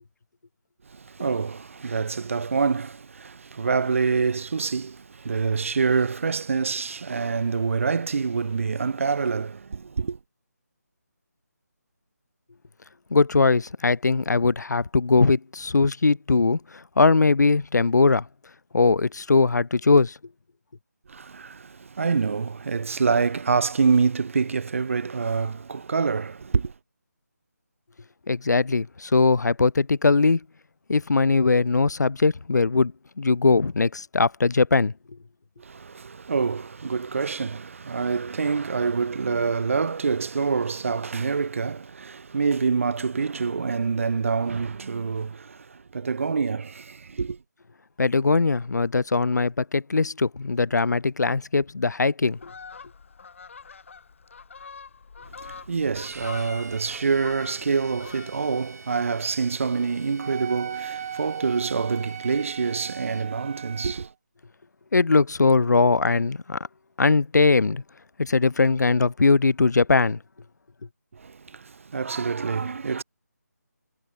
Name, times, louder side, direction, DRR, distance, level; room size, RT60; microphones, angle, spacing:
voice 1, 0.9-10.2 21.1-26.7 35.6-47.4 55.3-64.1 71.1-73.0, right 5 dB, 50° right, 0.5 m, -26 dB
voice 2, 13.1-18.2 18.7-20.1 28.3-30.4 30.9-32.9 33.2-34.9 48.0-52.5 64.9-66.6 67.0-67.8 68.2-70.2, left 4 dB, 80° left, 0.6 m, -20 dB
Fowl, 52.3-58.6 59.0-59.2, left 5 dB, 50° left, 5.0 m, -44 dB
Bowed string instrument, 56.0-63.3, right 3 dB, 70° right, 5.6 m, -47 dB
Wind instrument woodwind instrument, 60.2-64.1, right 9 dB, 25° right, 1.3 m, -37 dB
figure-of-eight pair, 165°, 9 cm